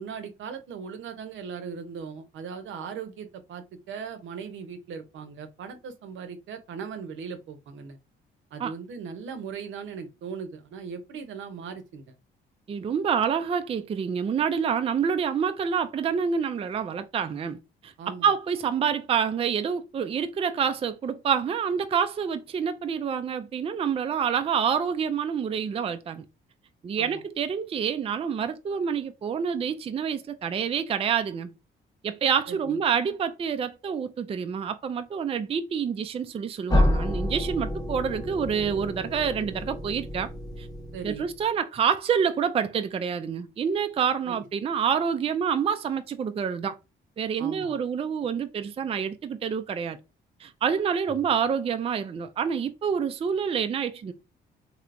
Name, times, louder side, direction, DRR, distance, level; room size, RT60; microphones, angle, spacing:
voice 1, 0.0-8.0 8.5-12.1 18.0-18.2 27.0-27.2 32.5-32.8 40.9-41.3 44.3-44.4 47.4-47.8, right 6 dB, 75° right, 0.7 m, -38 dB
voice 2, 12.7-26.2 26.8-31.5 32.0-40.3 40.6-40.7 41.0-46.8 47.2-50.0 50.4-54.1, right 7 dB, 30° right, 0.4 m, -27 dB
sound 1, 36.7-41.4, left 1 dB, 20° left, 0.9 m, -28 dB
3.3 x 2.8 x 2.5 m
cardioid pair, 90°, 20 cm